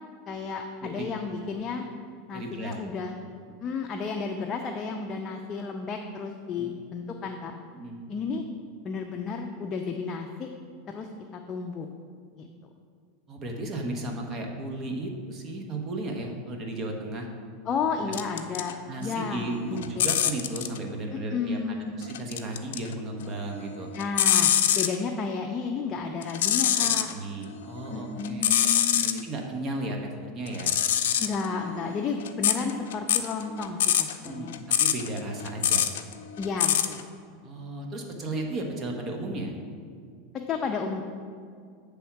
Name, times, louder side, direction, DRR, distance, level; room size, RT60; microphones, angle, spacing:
voice 1, 0.3-1.8 2.3-3.2 3.6-7.5 8.1-8.4 8.8-10.5 10.9-11.1 11.3-11.9 12.4-12.5 17.7-18.8 19.0-20.1 21.1-22.0 23.9-27.1 27.9-29.3 31.2-34.5 36.4-37.0 40.5-41.0, left 5 dB, 30° left, 3 dB, 0.5 m, -32 dB
voice 2, 2.3-2.7 6.6-6.7 7.7-8.2 13.3-17.3 18.0-18.1 18.9-21.6 21.9-23.9 26.6-28.7 29.0-30.8 34.2-34.5 34.8-35.9 37.4-39.5, right 2 dB, 35° right, 2 dB, 1.0 m, -34 dB
sound 1, 18.1-18.7 19.1-20.8 22.0-22.9 23.3-24.9 26.2-27.1 27.6-29.2 30.5-37.0, left 10 dB, 80° left, 0.4 m, -25 dB
8.3 x 3.5 x 5.8 m, 2.2 s
supercardioid pair, 125°, 0 cm